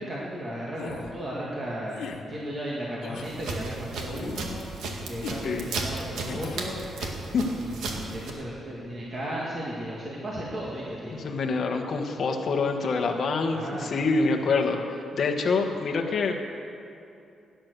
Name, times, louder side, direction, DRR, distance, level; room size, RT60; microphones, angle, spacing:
voice 1, 0.0-2.0 2.3-4.5 5.1-6.8 7.5-11.3 13.5-13.9 14.5-14.8, equal, 25° right, -5 dB, 2.0 m, -35 dB
sound 1, 0.8-1.1 1.9-2.2 3.0-3.3 4.2-4.5 5.2-5.5 6.3-6.7, left 5 dB, 90° left, 1.3 m, -38 dB
sound 2, 3.2-8.3, right 3 dB, 85° right, 2.0 m, -35 dB
voice 2, 7.0-7.6 11.1-16.3, left 4 dB, 40° left, 1 dB, 1.3 m, -26 dB
17.0 x 10.5 x 6.7 m, 2.6 s
wide cardioid pair, 180°, 0 cm